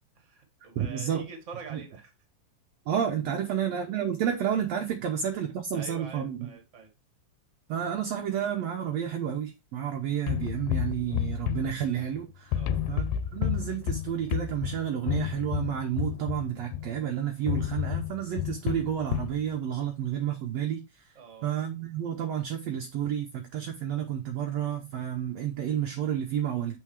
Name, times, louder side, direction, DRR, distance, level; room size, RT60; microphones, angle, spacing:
voice 1, 0.1-2.1 5.7-6.9 12.5-12.8 21.1-21.5, right 5 dB, 35° right, 1.3 m, -45 dB
voice 2, 0.7-1.3 1.7-1.8 2.9-6.5 7.7-12.6 12.9-13.0 13.3-21.1 21.4-26.8, right 9 dB, 75° right, 1.6 m, -30 dB
sound 1, 10.3-12.2 12.5-17.0 17.5-19.4, left 11 dB, 85° left, 2.2 m, -31 dB
7.2 x 4.6 x 3.2 m
omnidirectional pair, 3.9 m